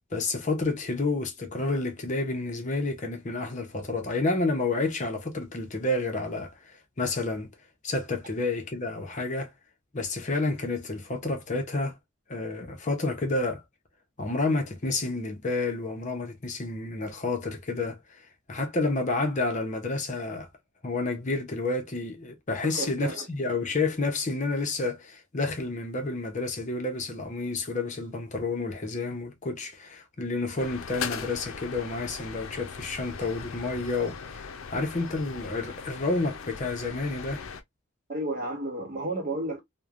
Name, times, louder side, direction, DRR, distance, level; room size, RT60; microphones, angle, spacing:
voice 1, 0.1-7.5 7.8-9.5 9.9-12.0 12.3-13.6 14.2-20.5 20.8-37.4, left 3 dB, 35° left, 0.7 m, -30 dB
voice 2, 22.6-23.3 38.1-39.6, right 2 dB, 40° right, 1.0 m, -32 dB
sound 1, 30.6-37.6, left 6 dB, 80° left, 0.5 m, -39 dB
3.0 x 2.2 x 2.4 m
head